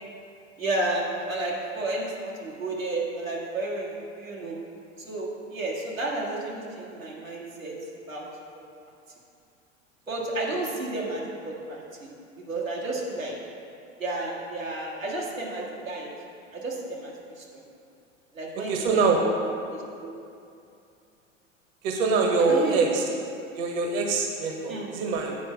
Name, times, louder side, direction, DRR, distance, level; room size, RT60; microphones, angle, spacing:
voice 1, 0.6-4.6 5.0-7.7 8.1-8.2 10.1-12.1 12.4-13.3 14.0-16.1 16.5-17.6 18.3-19.3 19.7-20.1 22.5-22.8 24.7-24.9, right 2 dB, 90° right, -5 dB, 1.6 m, -32 dB
voice 2, 18.7-19.2 21.8-23.0 23.5-25.3, right 4 dB, 40° right, 2 dB, 1.0 m, -24 dB
8.3 x 4.5 x 6.0 m, 2.6 s
figure-of-eight pair, 85°, 39 cm